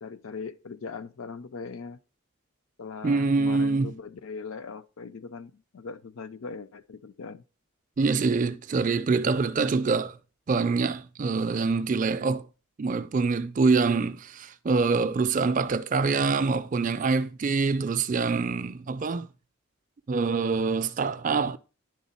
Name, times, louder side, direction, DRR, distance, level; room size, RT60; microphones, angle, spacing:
voice 1, 0.0-2.0 2.8-7.4, left 5 dB, 70° left, 0.5 m, -40 dB
voice 2, 3.0-3.9 8.0-10.2 10.5-12.5 12.8-19.3 20.1-21.6, right 4 dB, 35° right, 0.3 m, -25 dB
10.0 x 3.6 x 4.1 m
head